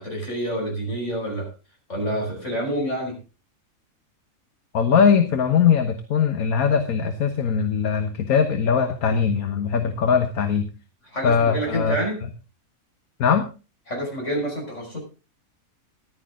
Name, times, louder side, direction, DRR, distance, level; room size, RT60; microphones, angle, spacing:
voice 1, 0.0-1.5 1.9-3.1 11.1-12.2 13.9-15.0, right 1 dB, 55° left, 0 dB, 6.0 m, -27 dB
voice 2, 4.7-10.7 11.2-12.0 13.2-13.4, left 6 dB, 75° left, 7 dB, 1.6 m, -20 dB
14.5 x 11.5 x 3.7 m, 0.32 s
omnidirectional pair, 1.5 m